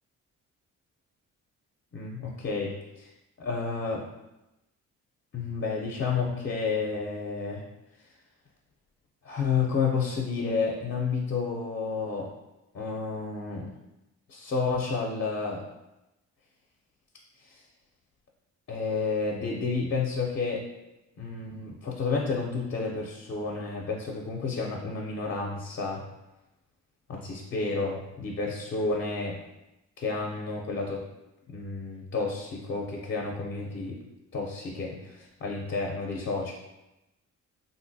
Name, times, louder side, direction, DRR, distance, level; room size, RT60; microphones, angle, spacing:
voice 1, 1.9-3.1 3.4-4.1 5.3-7.6 9.2-12.3 12.7-13.7 14.3-15.6 17.4-17.6 18.7-20.6 21.2-26.0 27.1-29.4 30.0-31.0 31.5-34.0 34.3-36.5, left 4 dB, 45° left, -1 dB, 0.5 m, -30 dB
3.2 x 2.6 x 2.6 m, 0.96 s
cardioid pair, 90°, 30 cm